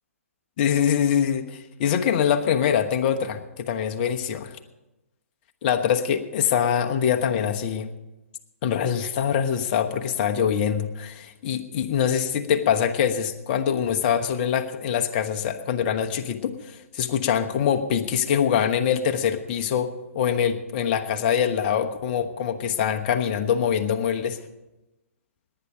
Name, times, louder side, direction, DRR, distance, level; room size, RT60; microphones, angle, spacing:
voice 1, 0.6-4.5 5.6-7.9 8.6-24.4, left 8 dB, 40° left, 6 dB, 1.1 m, -24 dB
18.5 x 10.0 x 5.1 m, 0.99 s
figure-of-eight pair, 125°, 8 cm